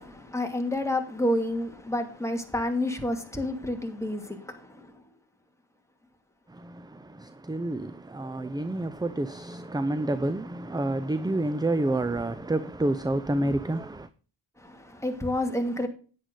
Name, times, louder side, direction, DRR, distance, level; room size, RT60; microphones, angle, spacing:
voice 1, 0.0-4.8 14.6-15.9, left 1 dB, 5° left, 2.4 m, -29 dB
voice 2, 6.5-14.1, right 1 dB, 10° right, 0.5 m, -29 dB
10.5 x 9.6 x 3.9 m
cardioid pair, 75°, 46 cm